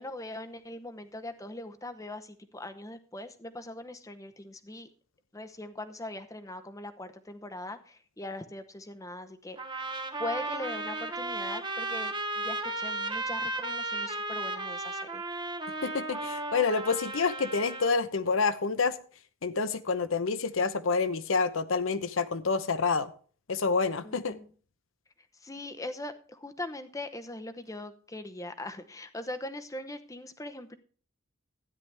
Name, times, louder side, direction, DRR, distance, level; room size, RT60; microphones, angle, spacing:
voice 1, 0.0-4.9 5.3-9.6 10.2-15.2 24.0-24.5 25.4-30.7, left 1 dB, 15° left, 0.8 m, -41 dB
sound 1, 9.6-17.9, right 2 dB, 20° right, 0.9 m, -34 dB
voice 2, 15.8-19.0 19.4-23.1 23.5-24.4, left 4 dB, 70° left, 0.8 m, -28 dB
13.0 x 10.0 x 3.4 m
head